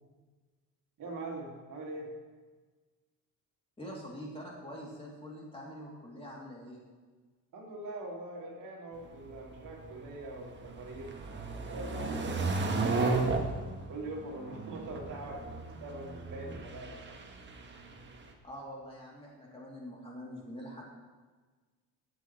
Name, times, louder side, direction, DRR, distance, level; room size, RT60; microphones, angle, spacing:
voice 1, 1.0-2.1 7.5-11.1 11.7-13.3 13.9-17.2, right 2 dB, 60° right, -1 dB, 2.6 m, -43 dB
voice 2, 3.8-6.8 18.4-20.8, equal, 15° left, -4 dB, 3.2 m, -45 dB
sound 1, 9.0-18.3, right 3 dB, 30° right, 1.4 m, -35 dB
17.5 x 8.0 x 3.3 m, 1.4 s
cardioid pair, 115°, 36 cm